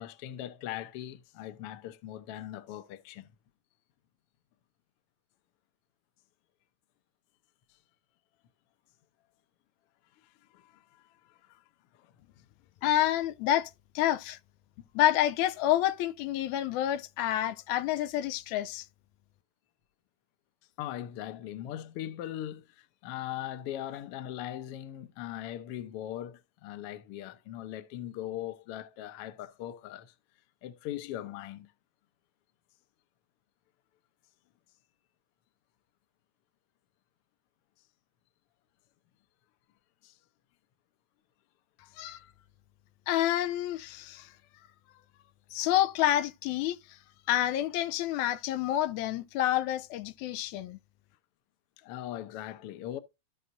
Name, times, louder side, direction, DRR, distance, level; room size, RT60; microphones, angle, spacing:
voice 1, 0.0-3.3 10.2-11.6 11.9-12.1 20.8-30.1 30.6-31.7 40.0-40.2 51.8-53.0, left 12 dB, 65° left, 1.6 m, -40 dB
voice 2, 12.8-14.4 15.0-18.9 42.0-42.2 43.1-44.3 45.5-46.8 47.3-50.8, left 13 dB, 85° left, 2.0 m, -28 dB
16.0 x 5.7 x 2.6 m
omnidirectional pair, 3.3 m